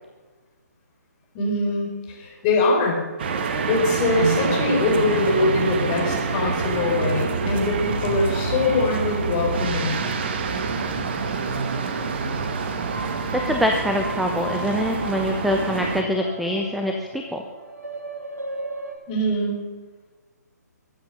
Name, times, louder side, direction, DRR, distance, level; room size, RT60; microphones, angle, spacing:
voice 1, 1.3-3.0 3.7-10.0 19.1-19.7, left 2 dB, 25° left, -1 dB, 4.6 m, -23 dB
sound 1, 3.2-16.0, right 4 dB, 35° right, 1.7 m, -26 dB
sound 2, 12.8-18.9, right 1 dB, 60° right, 4.6 m, -37 dB
voice 2, 13.3-17.4, equal, ahead, 3 dB, 0.8 m, -24 dB
22.5 x 9.1 x 6.7 m, 1.3 s
figure-of-eight pair, 140°, 9 cm